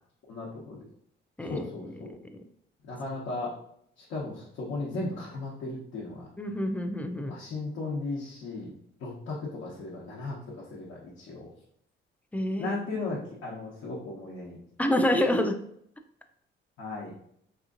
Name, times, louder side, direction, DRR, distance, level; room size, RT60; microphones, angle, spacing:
voice 1, 0.3-0.8 1.5-2.1 2.8-3.5 4.0-6.3 7.3-8.7 9.0-11.5 12.6-14.6 16.8-17.1, left 2 dB, 75° left, -5 dB, 0.9 m, -36 dB
voice 2, 1.4-1.9 6.4-7.3 12.3-12.8 14.8-15.5, left 1 dB, 5° left, 6 dB, 0.3 m, -27 dB
3.5 x 2.9 x 2.5 m, 0.69 s
cardioid pair, 90°, 20 cm